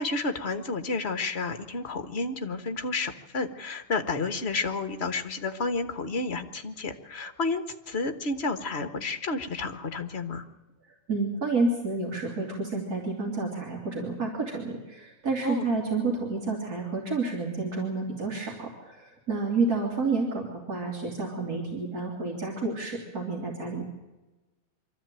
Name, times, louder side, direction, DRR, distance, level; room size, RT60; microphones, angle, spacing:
voice 1, 0.0-10.4 15.4-15.7, left 3 dB, 45° left, 9 dB, 1.4 m, -31 dB
voice 2, 11.1-23.8, right 3 dB, 80° right, -2 dB, 3.4 m, -30 dB
23.5 x 13.5 x 8.9 m, 1.1 s
omnidirectional pair, 1.6 m